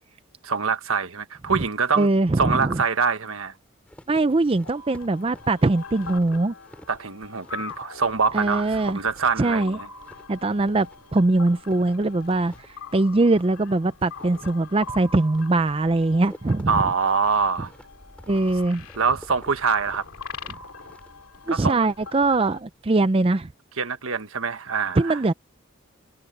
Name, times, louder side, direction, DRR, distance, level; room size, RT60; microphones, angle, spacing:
voice 1, 0.4-2.1 2.4-3.5 6.9-9.9 16.7-17.7 19.0-20.0 21.5-21.9 23.8-25.2, right 5 dB, 80° right, 1.4 m, -24 dB
voice 2, 2.0-2.8 4.1-6.5 8.3-9.0 9.4-9.8 10.3-10.9 11.1-12.5 12.9-16.7 18.3-18.8 21.5-23.5 25.0-25.3, right 2 dB, 25° right, 0.5 m, -21 dB
sound 1, 3.9-23.0, equal, 5° left, 5.4 m, -51 dB
sound 2, 4.6-22.6, left 4 dB, 85° left, 2.5 m, -43 dB
head